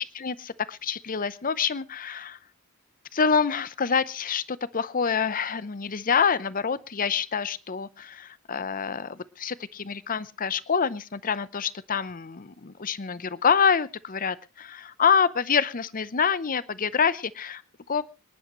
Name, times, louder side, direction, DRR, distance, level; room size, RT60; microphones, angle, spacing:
voice 1, 0.0-2.4 3.1-17.6 17.9-18.0, left 6 dB, 40° left, 17 dB, 0.7 m, -26 dB
26.0 x 11.0 x 3.1 m, 0.29 s
head